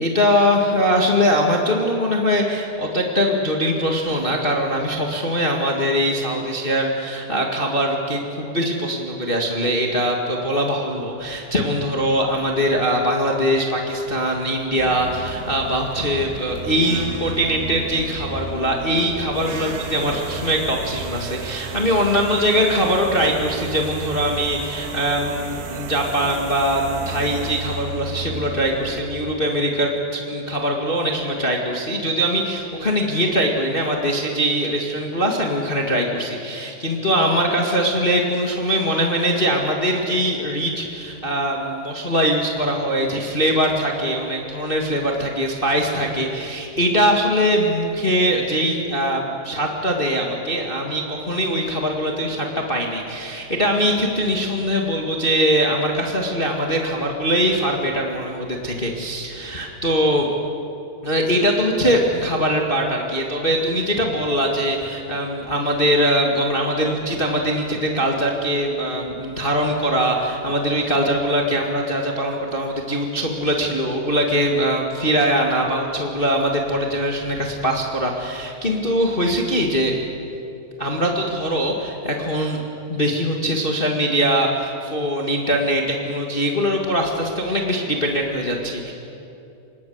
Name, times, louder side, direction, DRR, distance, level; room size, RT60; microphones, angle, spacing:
voice 1, 0.0-60.3 61.0-79.9 80.8-82.6 82.9-88.9, equal, 45° left, 1 dB, 0.6 m, -22 dB
sound 1, 14.8-29.0, right 5 dB, 80° right, 3.4 m, -33 dB
25.5 x 19.5 x 7.9 m, 2.7 s
omnidirectional pair, 4.6 m